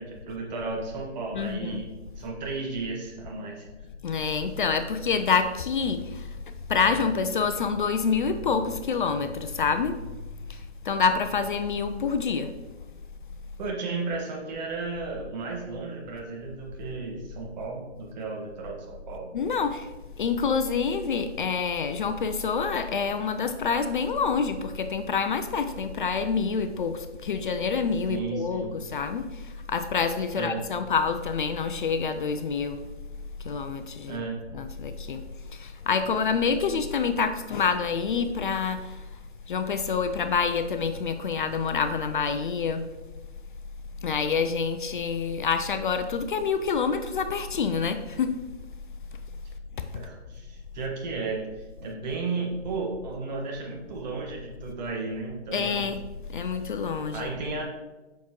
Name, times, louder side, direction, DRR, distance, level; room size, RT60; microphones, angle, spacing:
voice 1, 0.0-3.7 13.6-19.3 28.1-28.7 30.3-30.6 34.1-34.4 49.9-55.9 57.1-57.6, right 3 dB, 40° right, -1 dB, 1.6 m, -34 dB
voice 2, 1.3-1.8 4.0-6.4 6.7-10.0 10.5-12.5 19.3-19.9 20.2-32.8 33.4-34.2 34.5-35.2 35.5-39.0 39.5-42.8 44.0-48.4 55.5-56.0 56.3-57.3, left 5 dB, 50° left, 9 dB, 0.4 m, -27 dB
7.1 x 5.8 x 3.0 m, 1.2 s
hypercardioid pair, 145°, 34 cm